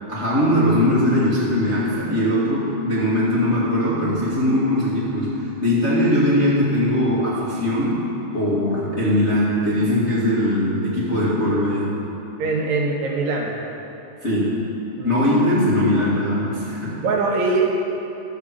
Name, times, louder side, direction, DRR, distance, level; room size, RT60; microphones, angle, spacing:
voice 1, 0.1-8.0 8.3-11.9 14.2-14.6 15.0-17.0, left 1 dB, 30° left, -8 dB, 1.4 m, -20 dB
voice 2, 12.4-13.5 15.0-15.3 17.0-17.7, right 3 dB, 70° right, -1 dB, 2.4 m, -22 dB
11.5 x 6.3 x 7.3 m, 2.9 s
omnidirectional pair, 3.5 m